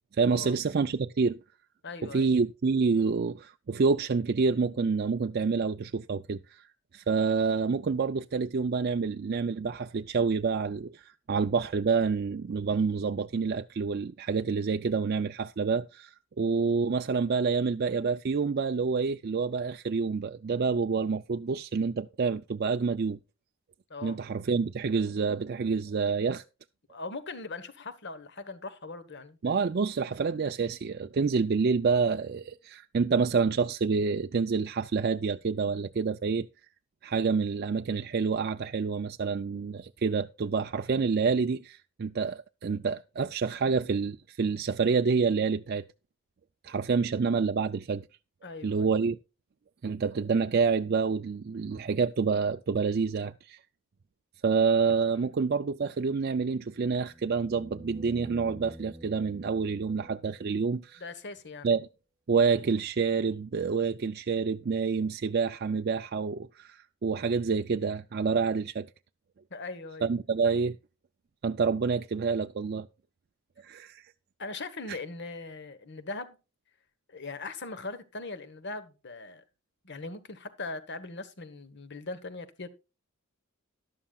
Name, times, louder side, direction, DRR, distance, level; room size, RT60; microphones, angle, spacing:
voice 1, 0.1-1.4 2.0-6.7 6.9-23.2 24.0-26.4 29.4-36.5 37.0-45.8 46.6-48.1 48.6-49.2 49.8-53.6 54.4-61.0 61.6-61.9 62.3-68.9 70.0-70.8 71.4-72.9 73.6-74.1 74.9-75.0, right 5 dB, 45° right, 0.4 m, -28 dB
voice 2, 1.8-2.3 23.9-24.2 26.9-29.4 48.4-48.9 61.0-61.7 69.5-70.1 74.4-76.4 77.1-79.4 79.8-82.7, left 3 dB, 55° left, 1.2 m, -40 dB
sound 1, 56.6-60.6 63.0-63.1, right 1 dB, 20° right, 1.0 m, -48 dB
12.5 x 12.0 x 2.4 m
head